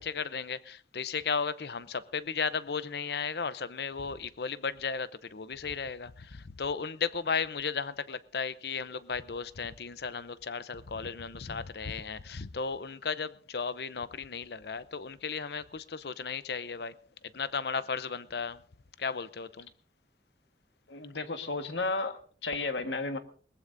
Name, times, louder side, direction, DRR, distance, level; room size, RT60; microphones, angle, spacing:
voice 1, 0.0-18.7 19.0-19.7, left 5 dB, 60° left, 0.7 m, -35 dB
voice 2, 20.9-23.2, left 3 dB, 80° left, 1.5 m, -33 dB
21.5 x 19.5 x 2.6 m
head